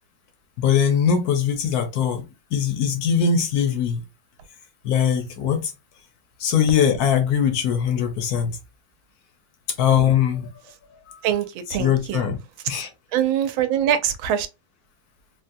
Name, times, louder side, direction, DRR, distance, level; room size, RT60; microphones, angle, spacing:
voice 1, 0.6-2.2 2.5-4.0 4.8-5.7 6.4-8.6 9.8-10.5 11.1-11.3 11.8-12.4 12.7-12.9, left 8 dB, 65° left, 1.0 m, -21 dB
voice 2, 11.2-12.2 13.1-14.5, right 10 dB, 85° right, 1.4 m, -23 dB
3.9 x 2.1 x 2.6 m
omnidirectional pair, 2.2 m